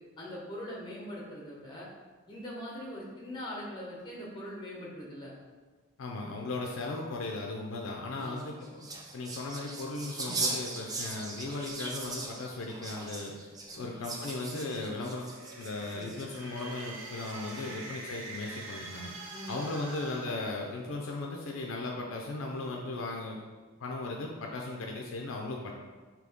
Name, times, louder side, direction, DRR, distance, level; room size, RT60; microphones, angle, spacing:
voice 1, 0.2-1.9 2.3-5.3 8.1-8.4 13.7-13.9 15.9-16.1 17.6-17.8 19.3-19.6 22.7-22.8, equal, 20° left, -5 dB, 0.9 m, -42 dB
voice 2, 6.0-8.9 9.1-13.3 13.7-15.3 15.6-19.1 19.5-23.4 23.8-25.7, left 2 dB, 65° left, 0 dB, 0.4 m, -37 dB
sound 1, 8.2-16.6 17.2-17.8, right 3 dB, 20° right, 0.3 m, -39 dB
sound 2, 15.2-21.2, right 2 dB, 90° right, 0.6 m, -45 dB
3.8 x 2.8 x 3.5 m, 1.4 s
head